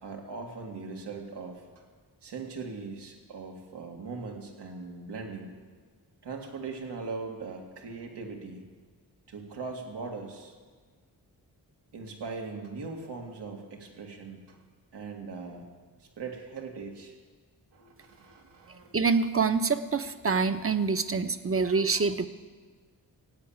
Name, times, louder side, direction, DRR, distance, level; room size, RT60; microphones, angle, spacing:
voice 1, 0.0-1.6 2.2-5.5 6.2-8.6 9.3-10.6 11.9-14.6 14.9-15.7 16.0-17.1 17.7-18.9, right 4 dB, 85° right, 1 dB, 2.1 m, -40 dB
voice 2, 18.9-22.3, right 4 dB, 35° right, 9 dB, 1.0 m, -26 dB
16.0 x 8.6 x 8.7 m, 1.5 s
cardioid pair, 45°, 40 cm